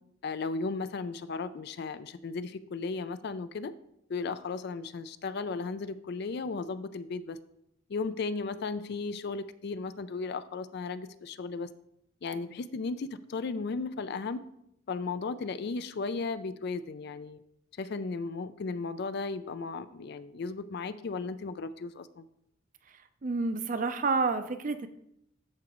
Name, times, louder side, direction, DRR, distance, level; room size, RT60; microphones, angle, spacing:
voice 1, 0.2-3.7 4.1-7.4 7.9-11.7 12.2-14.4 14.9-17.4 17.8-22.3, left 4 dB, 55° left, 13 dB, 0.4 m, -35 dB
voice 2, 23.2-24.9, right 4 dB, 40° right, 10 dB, 0.5 m, -29 dB
13.0 x 4.9 x 3.0 m, 0.77 s
head